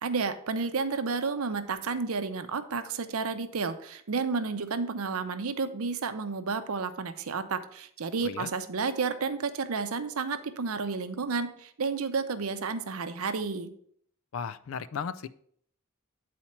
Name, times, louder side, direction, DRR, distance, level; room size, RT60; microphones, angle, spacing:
voice 1, 0.0-13.7, right 4 dB, 80° right, 9 dB, 0.6 m, -31 dB
voice 2, 14.3-15.3, left 6 dB, 65° left, 15 dB, 0.4 m, -35 dB
8.5 x 4.3 x 4.3 m, 0.64 s
head